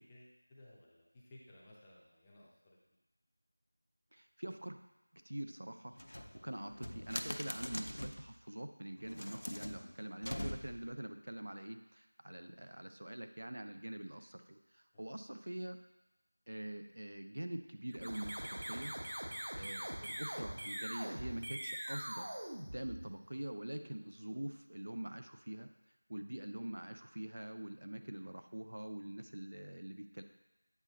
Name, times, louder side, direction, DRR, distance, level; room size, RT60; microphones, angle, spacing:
voice 1, 0.0-2.8 6.3-6.5 12.4-12.5 14.9-15.1, left 1 dB, 10° left, -6 dB, 0.6 m, -60 dB
voice 2, 4.1-4.8 5.1-15.8 16.5-19.0 19.6-22.3 22.7-25.7 26.1-30.2, right 1 dB, 65° right, 7 dB, 0.5 m, -45 dB
sound 1, 5.9-8.3 9.0-10.9, left 1 dB, 80° left, 0.6 m, -43 dB
sound 2, 17.9-23.4, right 1 dB, 50° right, 1.0 m, -43 dB
8.2 x 4.2 x 3.9 m, 0.98 s
figure-of-eight pair, 175°, 0 cm